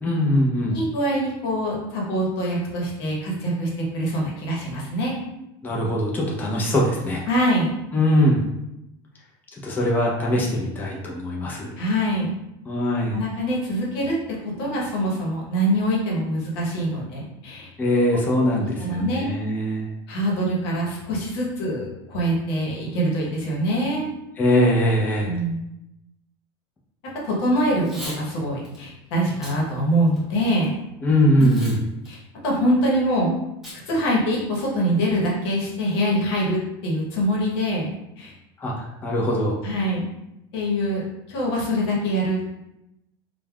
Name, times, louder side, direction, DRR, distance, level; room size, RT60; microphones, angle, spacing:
voice 1, 0.0-0.8 5.6-7.2 7.9-8.4 9.5-11.8 12.7-13.2 17.8-19.9 24.4-25.3 31.0-31.8 38.6-39.6, equal, 15° left, -3 dB, 0.5 m, -21 dB
voice 2, 0.7-5.2 7.3-7.7 11.8-12.4 13.1-14.1 14.6-17.7 18.6-19.3 20.1-24.1 25.2-25.6 27.2-30.8 31.4-31.5 32.1-32.2 32.4-33.3 33.9-38.3 39.6-40.1 40.5-42.6, equal, 75° left, -3 dB, 0.9 m, -24 dB
Packing tape duct tape / Tearing, 27.7-28.2 28.6-28.8 29.3-29.6 30.1-30.7 31.4-31.8 32.1-32.2 33.6-33.8 34.1-34.2 34.5-34.9, equal, 5° right, 1.2 m, -38 dB
3.2 x 2.2 x 2.3 m, 0.88 s
supercardioid pair, 120°, 13 cm